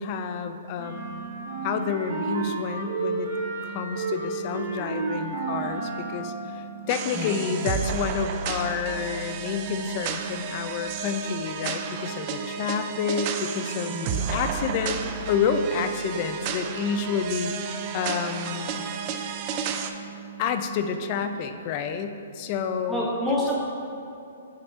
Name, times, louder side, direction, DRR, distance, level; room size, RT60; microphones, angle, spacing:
voice 1, 0.0-1.3 1.6-3.3 3.6-18.8 20.4-23.4, left 6 dB, 40° left, 8 dB, 0.4 m, -29 dB
sound 1, 0.8-6.5, right 3 dB, 55° right, 1.2 m, -32 dB
sound 2, 0.9-20.6, right 23 dB, 85° right, 0.7 m, -43 dB
sound 3, 6.9-19.9, right 6 dB, 40° right, 0.4 m, -32 dB
voice 2, 22.9-23.6, equal, 5° right, -5 dB, 0.7 m, -28 dB
5.9 x 3.2 x 5.3 m, 2.7 s
hypercardioid pair, 130°, 0 cm